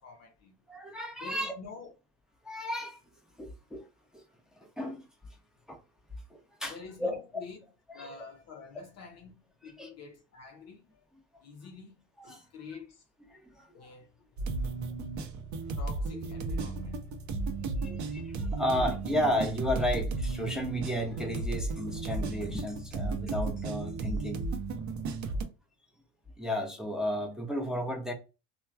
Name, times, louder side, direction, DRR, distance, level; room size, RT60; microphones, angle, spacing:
voice 1, 0.0-0.6 1.2-1.9 6.7-7.6 7.9-11.0 11.4-11.9 12.2-13.0 13.7-14.8 15.8-17.0 17.7-18.0, left 5 dB, 35° left, 0.5 m, -48 dB
voice 2, 0.7-1.5 2.4-3.0 3.4-3.9 4.1-4.2 4.6-5.0 5.7-5.8 6.3-7.2 7.9-8.2 9.6-9.9 12.2-12.4 13.3-13.9 17.6-24.5 26.4-28.1, equal, ahead, 0.7 m, -33 dB
sound 1, 14.4-25.4, right 3 dB, 40° right, 0.6 m, -34 dB
3.1 x 2.1 x 2.2 m
hypercardioid pair, 80°, 45 cm